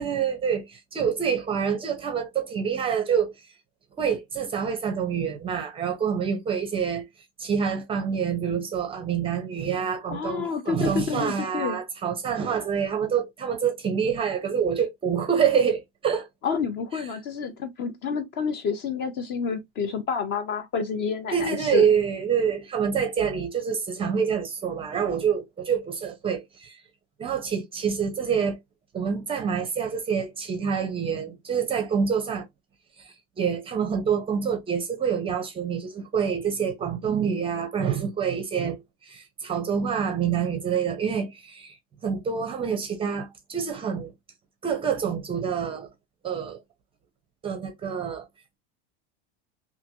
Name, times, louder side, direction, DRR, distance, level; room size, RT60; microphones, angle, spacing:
voice 1, 0.0-3.3 4.0-7.0 7.4-16.3 21.3-26.8 27.2-28.6 28.9-32.4 33.0-41.8 42.0-44.1 44.6-45.9 46.2-46.6 47.4-48.2, right 7 dB, 20° right, 0.5 m, -26 dB
voice 2, 10.1-11.8 16.4-21.9, left 6 dB, 35° left, 0.6 m, -29 dB
2.8 x 2.6 x 2.7 m
supercardioid pair, 150°, 31 cm